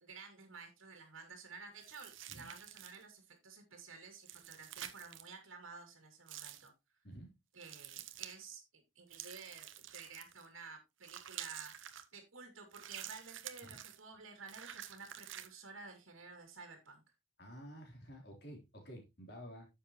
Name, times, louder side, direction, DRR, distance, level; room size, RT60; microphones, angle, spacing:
voice 1, 0.0-6.7 7.5-11.7 12.1-17.0, right 4 dB, 90° right, 3 dB, 2.4 m, -52 dB
sound 1, 1.8-3.1 4.2-5.3 6.3-6.7 7.6-8.4 9.1-10.5 11.0-12.0 12.7-14.0 14.5-15.5, right 11 dB, 70° right, 0.9 m, -49 dB
voice 2, 17.4-19.7, equal, 50° left, 1 dB, 3.7 m, -51 dB
9.8 x 7.5 x 3.1 m, 0.24 s
head